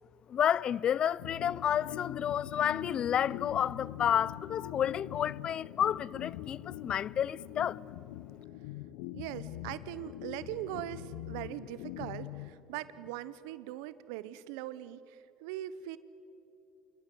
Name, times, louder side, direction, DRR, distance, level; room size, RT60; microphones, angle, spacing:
voice 1, 0.3-7.8, left 9 dB, 45° left, 0.4 m, -30 dB
sound 1, 1.2-13.1, left 13 dB, 85° left, 0.7 m, -43 dB
voice 2, 9.1-16.0, right 13 dB, 85° right, 0.9 m, -41 dB
27.0 x 20.5 x 7.8 m
supercardioid pair, 85°, 2 cm